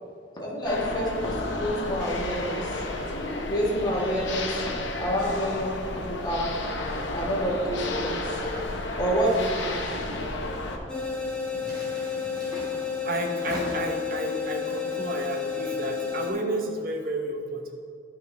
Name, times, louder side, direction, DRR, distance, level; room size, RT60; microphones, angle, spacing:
voice 1, 0.3-2.8 3.5-4.6 5.0-6.5 7.1-8.4 9.0-9.8 11.5-11.7 12.1-12.2, equal, 25° left, -5 dB, 1.7 m, -28 dB
sound 1, 0.6-10.8, left 2 dB, 70° left, 0.9 m, -31 dB
sound 2, 9.2-10.2 11.6-12.7 13.3-14.0, equal, 20° right, 2.1 m, -41 dB
sound 3, 10.9-16.3, left 6 dB, 5° left, 1.3 m, -31 dB
voice 2, 13.0-17.7, right 1 dB, 50° right, 2 dB, 1.0 m, -31 dB
12.0 x 5.6 x 3.4 m, 2.4 s
head